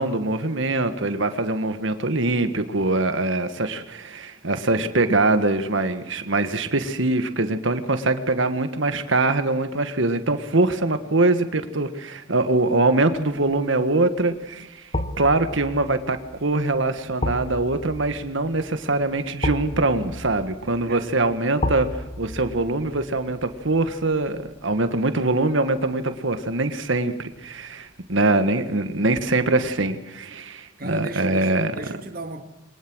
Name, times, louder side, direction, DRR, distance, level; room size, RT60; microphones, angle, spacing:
voice 1, 0.0-14.7 15.2-21.9 22.2-31.7, right 2 dB, 70° right, 1.6 m, -23 dB
sound 1, 13.2-13.5 14.9-25.9 26.3-26.4, left 1 dB, 30° left, 1.3 m, -34 dB
voice 2, 20.7-21.1 28.6-28.7 30.8-32.4, right 1 dB, 45° right, 2.0 m, -35 dB
22.5 x 20.0 x 6.3 m
head